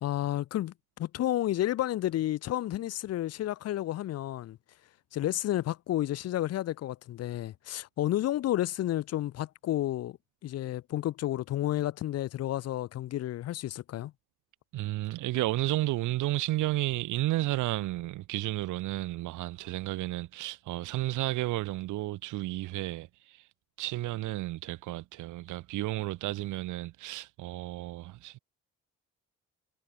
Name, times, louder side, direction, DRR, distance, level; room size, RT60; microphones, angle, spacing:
voice 1, 0.0-4.6 5.1-10.2 10.4-14.1, left 13 dB, 55° left, 0.5 m, -31 dB
voice 2, 14.7-23.5 23.8-28.4, right 17 dB, 85° right, 0.8 m, -32 dB
cardioid pair, 90°, 30 cm